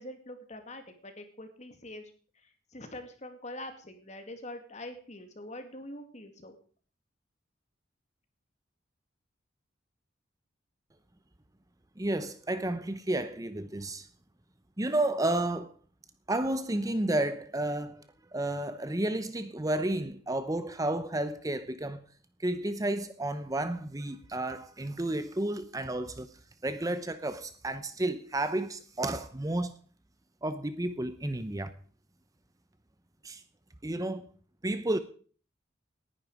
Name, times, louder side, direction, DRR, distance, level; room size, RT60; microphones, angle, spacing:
voice 1, 0.0-2.0 2.7-6.6, left 1 dB, 40° left, 2.4 m, -44 dB
voice 2, 12.0-14.1 14.8-15.7 16.3-18.0 18.3-22.0 22.4-26.3 26.6-29.8 30.4-31.7 33.2-33.4 33.8-34.3 34.6-35.0, right 1 dB, 20° right, 0.7 m, -31 dB
18.5 x 11.0 x 5.0 m
head